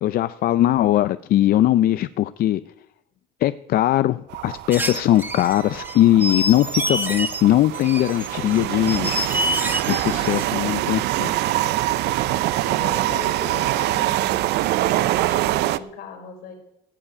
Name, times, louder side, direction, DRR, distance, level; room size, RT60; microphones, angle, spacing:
voice 1, 0.0-2.6 3.4-9.1 9.9-11.4, left 13 dB, 60° left, 15 dB, 0.5 m, -20 dB
sound 1, 4.3-15.8, right 15 dB, 85° right, 0.6 m, -24 dB
sound 2, 4.7-7.4 7.7-10.5, equal, 10° right, 1.6 m, -27 dB
voice 2, 12.6-14.5 14.8-16.5, left 6 dB, 80° left, 2 dB, 4.7 m, -38 dB
16.5 x 7.3 x 8.7 m, 0.83 s
cardioid pair, 110°, 17 cm